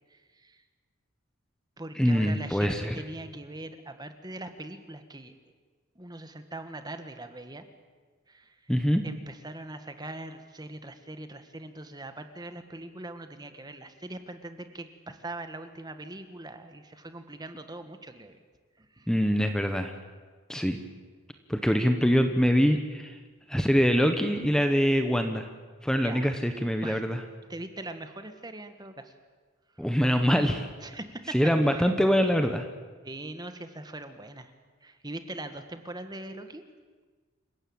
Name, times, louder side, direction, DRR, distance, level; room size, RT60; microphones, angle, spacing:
voice 1, 0.1-0.6 1.8-5.3 5.9-7.6 8.3-8.6 9.0-18.4 18.8-19.1 26.0-26.3 26.8-27.0 27.5-29.1 30.8-31.4 31.6-31.9 33.0-34.5 34.8-36.6, right 2 dB, 20° right, 8 dB, 1.4 m, -41 dB
voice 2, 2.0-3.0 8.7-9.0 19.1-19.9 20.5-20.8 21.5-23.2 23.5-25.5 25.8-27.2 29.8-30.7 31.3-32.7, equal, 5° left, 6 dB, 1.2 m, -24 dB
27.5 x 16.0 x 8.8 m, 1.4 s
head